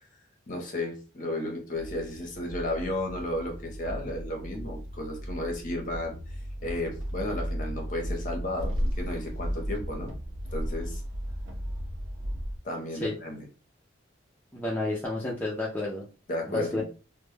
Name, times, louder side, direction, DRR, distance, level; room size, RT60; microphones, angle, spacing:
voice 1, 0.5-6.2 6.6-10.1 10.5-11.0 12.6-13.4 16.3-16.8, left 1 dB, 40° left, 2 dB, 0.7 m, -33 dB
sound 1, 1.7-12.6, equal, 90° right, 0.5 m, -35 dB
voice 2, 14.5-16.0 16.5-16.8, left 2 dB, 10° left, -4 dB, 0.3 m, -30 dB
2.2 x 2.0 x 3.1 m, 0.34 s
head